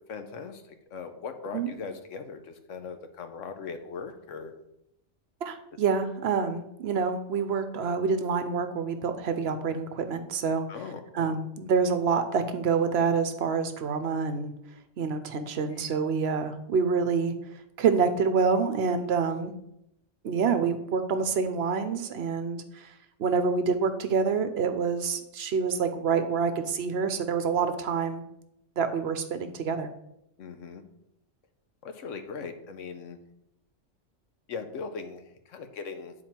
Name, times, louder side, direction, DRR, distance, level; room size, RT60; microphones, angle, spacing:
voice 1, 0.1-4.5 10.7-11.4 15.7-15.9 30.4-30.8 31.8-33.2 34.5-36.1, left 5 dB, 90° left, 8 dB, 1.2 m, -39 dB
voice 2, 5.4-10.7 11.1-14.5 15.0-17.3 17.8-19.5 20.2-22.9 23.2-28.2 28.8-29.9, right 5 dB, 60° right, 9 dB, 0.9 m, -27 dB
9.0 x 4.3 x 4.4 m, 0.80 s
omnidirectional pair, 1.3 m